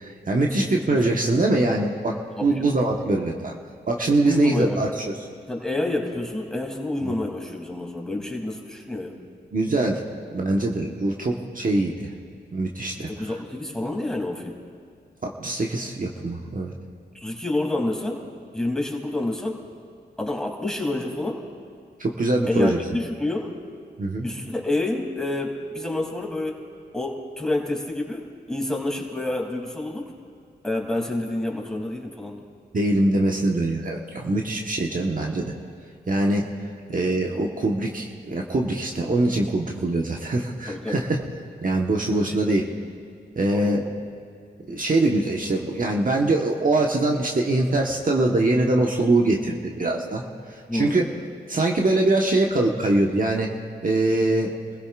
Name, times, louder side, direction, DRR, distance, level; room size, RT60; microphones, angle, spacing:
voice 1, 0.0-3.5 3.9-5.1 7.0-7.1 9.5-10.0 10.3-12.1 12.5-13.3 15.2-16.7 22.0-22.8 24.0-24.3 32.7-35.5 36.1-36.5 36.9-41.2 41.6-42.6 43.3-43.9 44.7-50.2 50.7-51.0 51.5-53.5 53.8-54.5, right 2 dB, 50° right, 0 dB, 1.3 m, -23 dB
voice 2, 0.6-1.4 2.4-2.8 4.2-4.8 5.5-9.1 13.0-14.6 17.1-18.2 18.5-19.6 20.2-21.4 22.5-23.5 24.2-26.6 26.9-30.1 30.6-32.4 40.7-41.0 42.4-42.8 43.5-43.8 50.7-51.1, left 2 dB, 5° left, -1 dB, 3.0 m, -28 dB
27.5 x 16.0 x 2.5 m, 2.2 s
cardioid pair, 50°, 19 cm